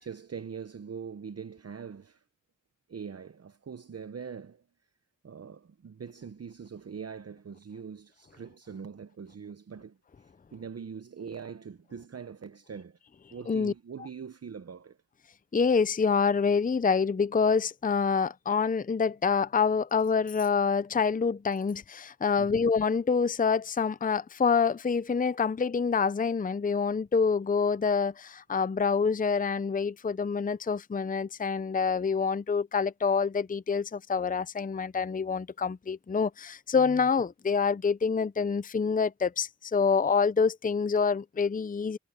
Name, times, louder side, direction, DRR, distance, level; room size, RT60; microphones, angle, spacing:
voice 1, 0.0-2.2 2.9-4.6 5.2-13.0 13.3-15.0 22.4-22.7, right 6 dB, 50° right, 0.8 m, -43 dB
voice 2, 15.5-42.0, left 5 dB, 25° left, 0.6 m, -26 dB
cardioid pair, 50°, 31 cm